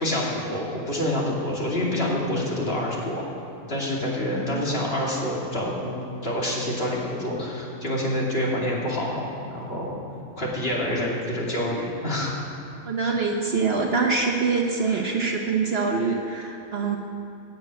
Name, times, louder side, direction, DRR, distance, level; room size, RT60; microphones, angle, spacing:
voice 1, 0.0-3.2 3.7-10.0 10.4-12.4 13.0-13.2 14.8-15.0, left 1 dB, 40° left, -4 dB, 2.9 m, -27 dB
voice 2, 4.3-4.7 12.8-17.0, right 4 dB, 50° right, 1 dB, 1.1 m, -25 dB
12.5 x 7.8 x 9.3 m, 2.8 s
omnidirectional pair, 1.5 m